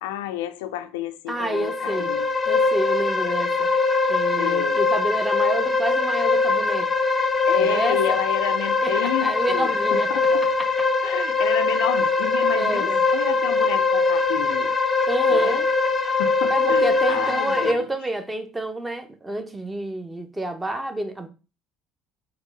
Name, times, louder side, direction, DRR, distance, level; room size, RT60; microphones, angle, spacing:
voice 1, 0.0-2.3 4.4-4.8 7.5-10.5 11.0-14.8 15.3-15.6 16.0-17.9, left 11 dB, 75° left, 0.3 m, -30 dB
voice 2, 1.3-2.1 2.5-3.7 4.1-6.9 7.6-8.2 8.8-10.1 10.6-10.7 12.6-13.0 15.1-15.7 16.5-21.3, right 1 dB, 15° right, 0.8 m, -29 dB
sound 1, 1.4-17.7, left 3 dB, 25° left, 0.6 m, -22 dB
4.6 x 2.2 x 3.9 m
hypercardioid pair, 60°, 0 cm